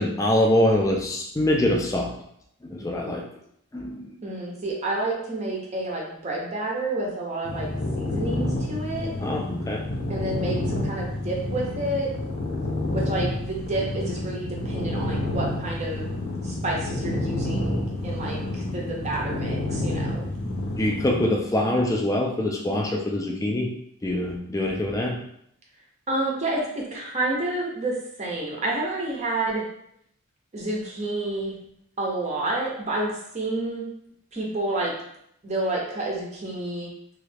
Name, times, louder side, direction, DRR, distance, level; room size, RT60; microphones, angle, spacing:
voice 1, 0.0-2.1 2.6-3.2 3.7-4.1 9.2-9.8 20.8-23.7 24.0-25.2, left 1 dB, 15° left, 0 dB, 0.3 m, -24 dB
voice 2, 4.2-7.7 8.0-9.1 10.1-12.1 12.9-16.1 16.4-20.3 26.1-29.6 30.5-31.6 32.0-33.9 34.3-34.9 35.4-36.9, right 2 dB, 30° right, -2 dB, 0.6 m, -29 dB
sound 1, 7.5-21.3, left 1 dB, 45° left, 0.7 m, -29 dB
3.1 x 2.4 x 3.3 m, 0.72 s
head